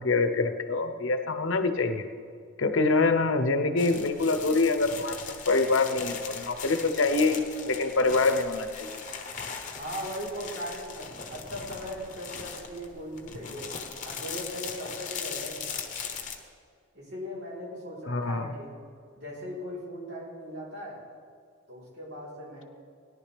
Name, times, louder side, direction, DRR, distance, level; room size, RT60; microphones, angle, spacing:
voice 1, 0.0-2.0 2.6-5.2 5.5-9.0 18.1-18.5, left 3 dB, 65° left, 8 dB, 0.8 m, -25 dB
sound 1, 3.8-16.4, left 6 dB, 35° left, 1.0 m, -39 dB
voice 2, 9.7-13.7 14.0-15.9 16.9-18.7 19.2-21.0 21.7-22.6, equal, 55° right, -6 dB, 3.8 m, -39 dB
17.5 x 11.0 x 3.4 m, 2.2 s
head